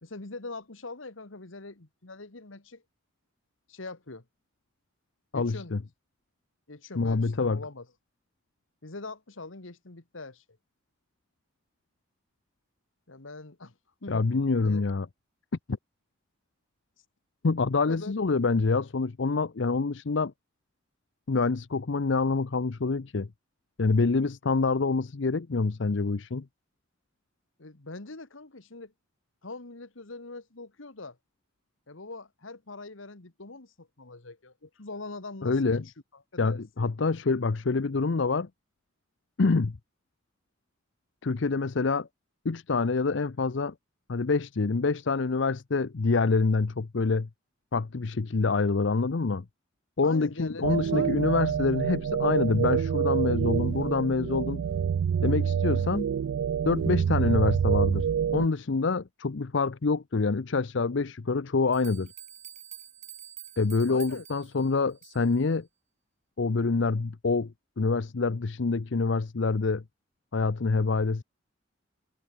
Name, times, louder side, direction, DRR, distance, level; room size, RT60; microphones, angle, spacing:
voice 1, 0.0-2.8 3.7-4.2 5.3-5.7 6.7-7.8 8.8-10.4 13.1-13.7 14.0-14.3 14.6-14.9 17.5-18.2 27.6-28.9 29.4-31.2 31.9-35.8 36.3-36.9 50.0-51.2 63.9-64.2, left 3 dB, 80° left, 1.8 m, -42 dB
voice 2, 5.3-5.8 7.0-7.6 14.1-15.1 15.7-15.8 17.4-20.3 21.3-23.3 23.8-26.5 35.4-35.8 36.4-38.5 39.4-39.8 41.2-42.1 42.4-43.7 44.1-47.3 47.7-49.4 50.0-54.6 55.2-56.1 56.7-58.1 58.3-62.1 63.6-65.7 66.4-69.8 70.3-71.2, left 4 dB, 65° left, 0.6 m, -26 dB
sound 1, 50.6-58.5, right 7 dB, 85° right, 0.3 m, -27 dB
sound 2, 61.7-65.4, right 11 dB, 35° right, 3.5 m, -47 dB
head